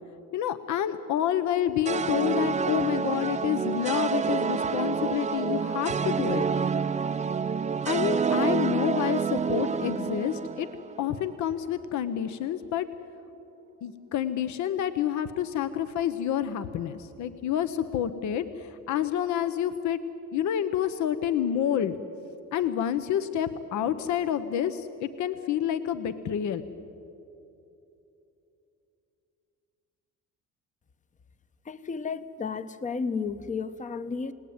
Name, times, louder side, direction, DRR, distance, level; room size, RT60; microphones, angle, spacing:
voice 1, 0.3-6.5 7.9-10.7 11.0-12.9 13.8-20.0 20.3-22.0 22.5-26.6, left 10 dB, 65° left, 11 dB, 1.1 m, -28 dB
sound 1, 1.8-11.2, right 6 dB, 20° right, 0.6 m, -28 dB
voice 2, 31.6-34.3, left 5 dB, 25° left, 12 dB, 0.9 m, -32 dB
28.0 x 19.0 x 9.5 m, 2.9 s
cardioid pair, 130°, 32 cm